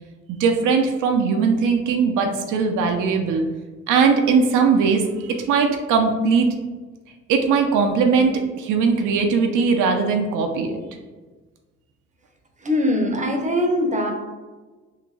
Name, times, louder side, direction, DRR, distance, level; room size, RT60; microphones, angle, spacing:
voice 1, 0.4-3.5 3.9-6.5 7.3-10.8, right 5 dB, 85° right, 4 dB, 0.6 m, -19 dB
voice 2, 12.6-14.1, left 1 dB, 25° right, 2 dB, 0.6 m, -21 dB
3.7 x 2.5 x 3.0 m, 1.3 s
cardioid pair, 90°, 30 cm